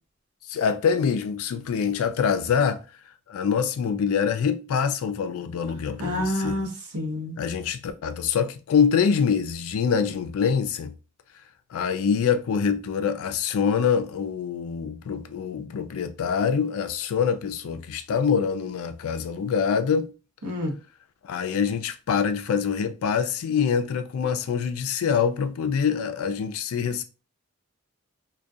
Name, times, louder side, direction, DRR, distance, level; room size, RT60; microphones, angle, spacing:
voice 1, 0.5-2.8 3.3-6.6 7.4-10.9 11.7-20.1 21.2-27.0, left 6 dB, 75° left, 0.3 m, -25 dB
voice 2, 6.0-6.7 6.9-7.3 20.4-20.7, left 1 dB, 85° right, 0.8 m, -27 dB
2.5 x 2.2 x 2.3 m
head